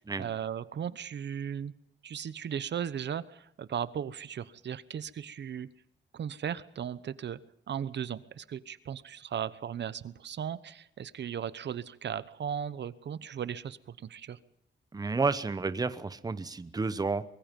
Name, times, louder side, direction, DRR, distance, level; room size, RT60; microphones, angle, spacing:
voice 1, 0.2-1.7 2.0-5.7 6.1-7.4 7.7-14.4, right 8 dB, 60° right, 16 dB, 1.0 m, -36 dB
voice 2, 14.9-17.2, right 4 dB, 20° right, 13 dB, 1.0 m, -31 dB
24.5 x 22.5 x 5.4 m, 0.74 s
wide cardioid pair, 155°, 20 cm